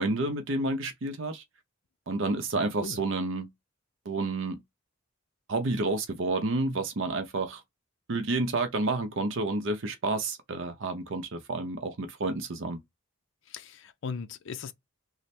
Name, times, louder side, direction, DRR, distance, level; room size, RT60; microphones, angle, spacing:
voice 1, 0.0-1.4 2.1-3.5 4.1-4.6 5.5-7.6 8.1-12.8, right 2 dB, 60° right, 0.6 m, -30 dB
voice 2, 13.5-14.7, left 5 dB, 60° left, 0.4 m, -38 dB
3.2 x 2.0 x 4.1 m
head